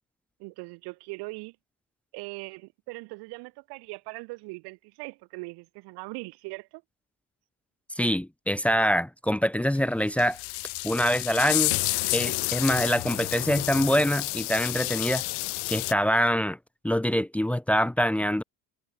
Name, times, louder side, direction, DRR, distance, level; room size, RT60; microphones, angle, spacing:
voice 1, 0.4-1.6 2.1-6.8, right 26 dB, 85° right, 7.7 m, -40 dB
voice 2, 7.9-10.4 10.8-11.8 12.1-15.2 15.7-16.6 16.8-18.4, equal, 5° left, 1.4 m, -25 dB
sound 1, 9.8-9.9 10.2-15.9, left 27 dB, 80° left, 2.3 m, -30 dB
cardioid pair, 150°, 38 cm